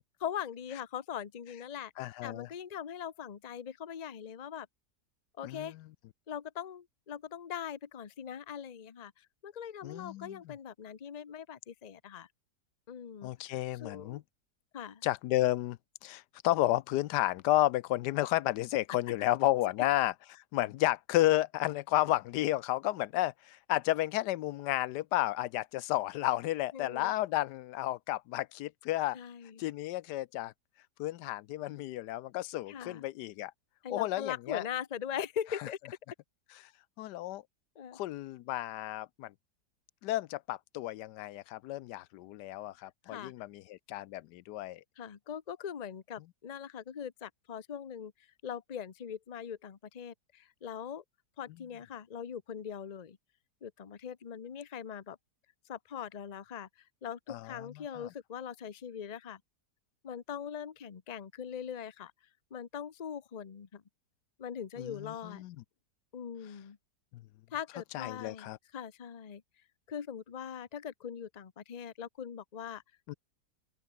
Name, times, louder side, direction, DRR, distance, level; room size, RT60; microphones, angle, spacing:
voice 1, 0.2-1.9 2.2-4.7 5.4-5.7 6.3-12.3 12.9-13.3 13.8-14.2 14.7-15.0 26.7-27.1 29.1-29.6 32.7-33.0 33.8-35.8 37.8-38.0 43.1-43.3 45.0-48.1 48.4-51.0 51.4-53.2 53.6-55.2 55.7-56.7 57.0-59.4 60.0-62.1 62.5-63.8 64.4-65.4 66.1-66.8 67.5-69.4 69.9-72.8, left 8 dB, 35° left, 0.7 m, -41 dB
voice 2, 2.0-2.5 5.4-5.8 9.8-10.5 13.2-14.2 15.0-29.2 29.6-30.5 31.0-33.5 33.9-34.6 35.6-35.7 37.0-37.4 37.9-39.3 40.0-44.8 57.3-58.1 64.8-65.6 67.1-67.2 67.9-68.6 73.1-73.2, left 15 dB, 85° left, 1.2 m, -32 dB
open air
omnidirectional pair, 1.8 m